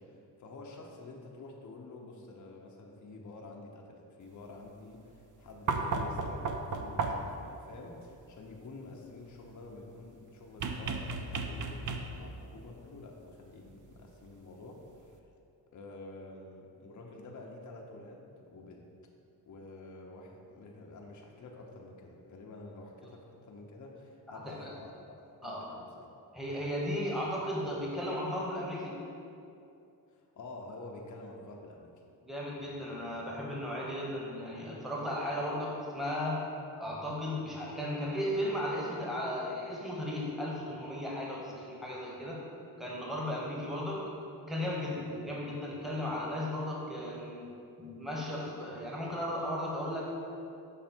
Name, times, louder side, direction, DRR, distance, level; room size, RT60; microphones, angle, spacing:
voice 1, 0.0-15.2 15.7-18.9 19.5-26.0 30.1-31.9, left 2 dB, 40° left, 0 dB, 0.7 m, -49 dB
sound 1, 5.7-7.4 10.6-12.4 13.9-14.0, right 3 dB, 45° right, 0.5 m, -34 dB
voice 2, 24.3-24.7 25.4-25.7 26.3-29.0 32.2-36.5 36.8-42.4 42.8-44.0 44.5-47.5 47.8-50.1, left 1 dB, ahead, -4 dB, 1.3 m, -35 dB
6.6 x 3.3 x 4.4 m, 2.6 s
cardioid pair, 70°, 43 cm